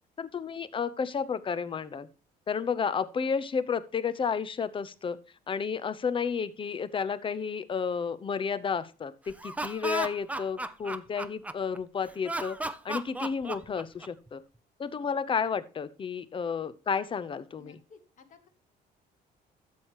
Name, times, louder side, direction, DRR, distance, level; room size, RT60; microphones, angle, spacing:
voice 1, 0.2-2.1 2.5-5.2 5.5-12.6 12.8-14.4 14.8-17.8, left 6 dB, 30° left, 15 dB, 0.8 m, -31 dB
Laughter, 9.3-11.8 12.2-14.3, right 2 dB, 10° right, 0.6 m, -35 dB
voice 2, 17.6-18.5, left 4 dB, 50° left, 8 dB, 1.7 m, -55 dB
12.5 x 7.5 x 3.0 m, 0.33 s
cardioid pair, 110°, 17 cm